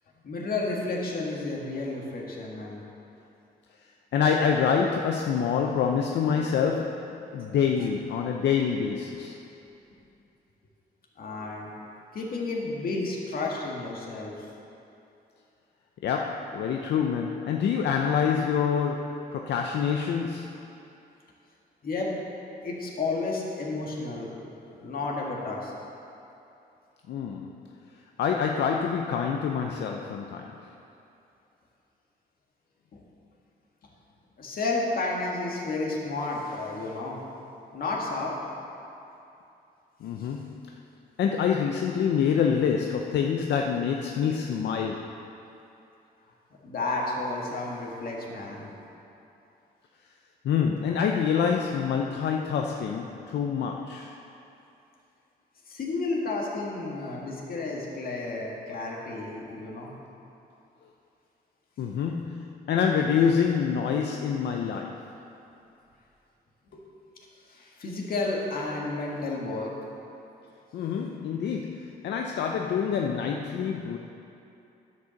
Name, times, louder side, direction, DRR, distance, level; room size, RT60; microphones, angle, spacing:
voice 1, 0.2-2.8 11.2-11.7 12.1-14.3 21.8-22.1 22.6-24.3 24.6-25.7 32.9-33.0 34.4-37.2 37.7-38.3 46.6-48.7 55.7-59.9 66.7-66.8 67.5-69.7, left 3 dB, 55° left, -2 dB, 1.9 m, -31 dB
voice 2, 4.1-9.4 16.0-20.6 27.1-27.5 28.2-30.6 40.0-40.7 41.2-45.2 50.4-54.2 61.8-65.1 70.7-74.0, left 7 dB, 80° left, 2 dB, 0.6 m, -26 dB
10.5 x 5.5 x 7.0 m, 2.8 s
cardioid pair, 105°, 18 cm